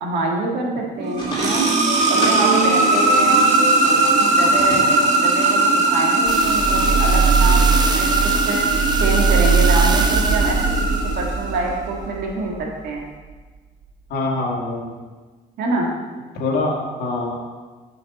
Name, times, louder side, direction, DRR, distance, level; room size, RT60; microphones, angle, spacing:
voice 1, 0.0-1.7 2.1-3.4 3.8-8.6 9.0-10.6 10.9-13.0 15.6-15.9, right 2 dB, 70° right, -1 dB, 1.8 m, -26 dB
sound 1, 1.0-11.7, right 2 dB, 45° right, 1.5 m, -19 dB
sound 2, 1.2-4.0 4.5-5.6 5.8-5.9 7.1-7.2, left 1 dB, 25° left, 2.1 m, -32 dB
sound 3, 6.3-12.7 13.3-13.4, right 4 dB, 25° right, 0.7 m, -20 dB
voice 2, 14.1-15.0 16.3-17.4, left 2 dB, 70° left, 0 dB, 1.8 m, -24 dB
7.3 x 5.3 x 5.3 m, 1.3 s
cardioid pair, 110°, 17 cm